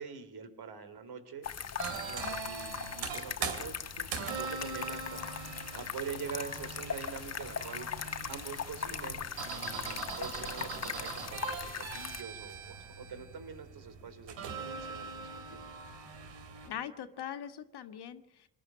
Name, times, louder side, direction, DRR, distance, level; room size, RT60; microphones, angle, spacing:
voice 1, 0.0-1.5 2.0-5.3 5.7-7.9 8.2-15.6, right 6 dB, 55° right, 11 dB, 3.4 m, -45 dB
sound 1, 1.4-12.2, left 7 dB, 35° left, 1.2 m, -40 dB
sound 2, 1.8-16.7, right 5 dB, 70° right, 3.3 m, -41 dB
voice 2, 16.6-18.5, left 9 dB, 55° left, 9 dB, 1.6 m, -41 dB
26.0 x 12.0 x 9.0 m, 0.89 s
hypercardioid pair, 45°, 46 cm